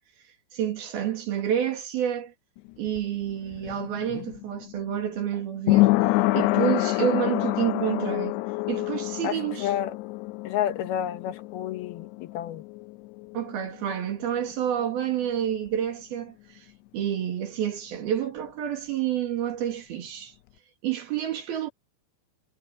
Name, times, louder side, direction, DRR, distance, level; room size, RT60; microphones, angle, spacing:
voice 1, 0.5-2.3 2.8-5.9 6.3-8.4 8.7-9.7 13.3-16.7 16.9-20.3 20.8-21.7, right 10 dB, 55° right, 3.8 m, -29 dB
sound 1, 2.6-14.1 14.4-14.5, left 19 dB, 85° left, 2.4 m, -27 dB
voice 2, 9.6-9.9 10.4-12.6, left 11 dB, 65° left, 2.7 m, -30 dB
omnidirectional pair, 5.6 m